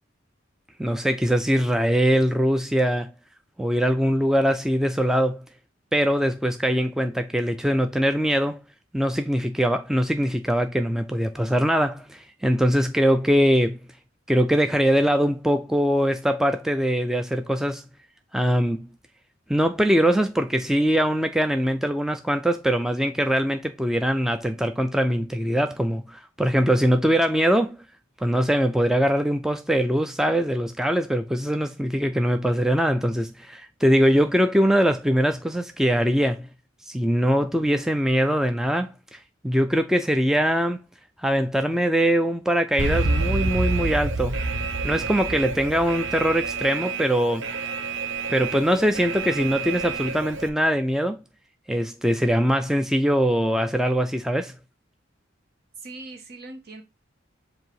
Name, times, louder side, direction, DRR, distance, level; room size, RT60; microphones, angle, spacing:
voice 1, 0.8-3.1 3.6-5.4 5.9-8.6 8.9-13.8 14.3-17.8 18.3-18.9 19.5-27.8 28.2-36.5 36.8-40.8 41.2-44.4 44.8-47.5 48.3-51.2 51.7-54.5, equal, 5° right, 0.4 m, -22 dB
Alarm, 42.8-50.5, right 3 dB, 85° right, 0.8 m, -28 dB
voice 2, 55.8-56.8, right 2 dB, 55° right, 1.4 m, -40 dB
7.6 x 2.7 x 4.6 m
head